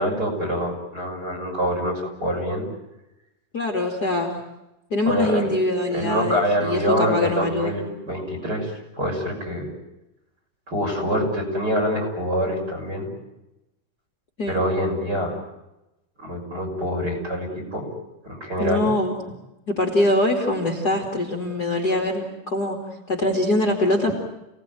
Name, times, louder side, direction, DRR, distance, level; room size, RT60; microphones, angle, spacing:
voice 1, 0.0-2.7 5.0-5.5 5.9-9.7 10.7-13.1 14.5-15.4 16.2-17.9 18.2-18.9, equal, 30° right, 2 dB, 6.7 m, -25 dB
voice 2, 3.5-4.4 4.9-7.7 14.4-14.6 18.6-19.1 19.7-22.8 23.1-24.2, left 2 dB, 30° left, 0 dB, 3.0 m, -23 dB
29.0 x 19.0 x 9.4 m, 0.95 s
omnidirectional pair, 3.7 m